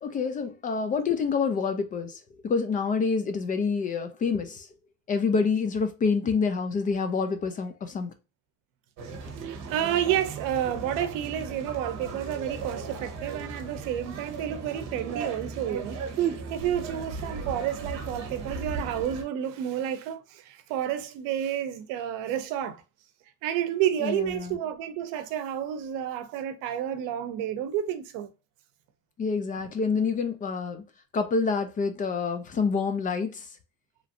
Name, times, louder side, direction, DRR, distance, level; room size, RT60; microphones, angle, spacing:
voice 1, 0.0-4.7 5.1-8.1 24.0-24.6 29.2-30.8 31.1-33.6, left 5 dB, 25° left, 0.4 m, -27 dB
sound 1, 9.0-19.2, right 5 dB, 60° right, 1.0 m, -36 dB
voice 2, 9.4-22.8 23.4-28.3, right 10 dB, 90° right, 0.6 m, -30 dB
3.1 x 2.5 x 2.4 m
cardioid pair, 150°, 32 cm